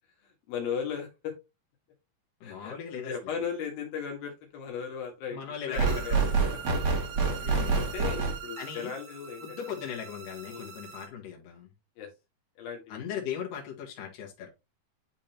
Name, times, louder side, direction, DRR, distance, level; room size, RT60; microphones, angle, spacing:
voice 1, 0.2-1.3 2.4-5.4 5.6-6.3 6.7-6.8 7.9-9.8 10.5-10.7 12.0-12.1 12.6-13.1, left 7 dB, 85° left, 2 dB, 3.4 m, -37 dB
voice 2, 2.4-3.1 5.3-6.5 7.4-7.9 8.6-8.9 9.4-11.7 12.9-14.5, left 8 dB, 70° left, -1 dB, 3.2 m, -38 dB
sound 1, 5.7-11.1, right 4 dB, 55° right, 1.1 m, -29 dB
10.5 x 3.7 x 2.9 m, 0.25 s
omnidirectional pair, 4.1 m